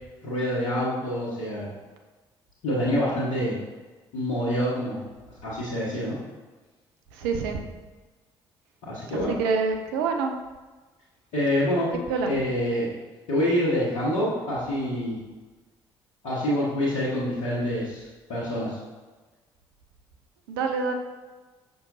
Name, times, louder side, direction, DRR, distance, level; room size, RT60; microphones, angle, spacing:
voice 1, 0.2-1.7 2.6-3.6 4.1-5.0 5.4-6.1 8.8-9.4 11.3-11.9 12.2-12.9 13.3-15.2 16.2-18.8, equal, 65° left, -9 dB, 1.5 m, -26 dB
voice 2, 7.2-7.6 9.4-10.3 12.1-12.3 20.5-20.9, right 5 dB, 70° right, 4 dB, 0.6 m, -26 dB
6.1 x 5.9 x 2.7 m, 1.3 s
figure-of-eight pair, 45°, 13 cm